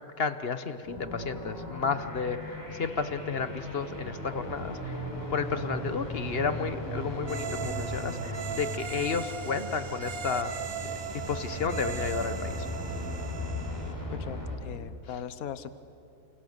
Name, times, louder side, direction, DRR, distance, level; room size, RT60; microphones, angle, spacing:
voice 1, 0.0-5.0 5.3-10.5 10.8-10.9 11.3-12.7, left 5 dB, 40° left, 11 dB, 1.0 m, -32 dB
sound 1, 0.8-14.6, left 1 dB, 10° left, 4.8 m, -37 dB
sound 2, 7.2-13.9, right 7 dB, 55° right, 1.6 m, -38 dB
voice 2, 14.1-15.7, left 9 dB, 60° left, 13 dB, 1.3 m, -39 dB
30.0 x 27.5 x 6.7 m, 2.6 s
omnidirectional pair, 1.9 m